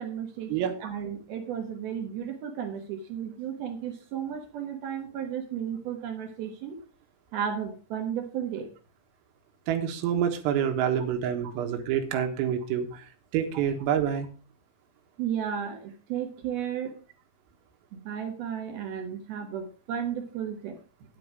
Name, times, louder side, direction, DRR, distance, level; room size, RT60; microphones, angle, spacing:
voice 1, 0.0-6.8 7.3-8.7 10.8-10.9 12.1-12.2 15.2-16.9 17.9-20.8, right 8 dB, 70° right, 5 dB, 2.5 m, -34 dB
voice 2, 9.7-13.1 13.3-14.3, right 9 dB, 85° right, 4 dB, 4.0 m, -27 dB
9.6 x 9.3 x 4.8 m, 0.36 s
omnidirectional pair, 6.0 m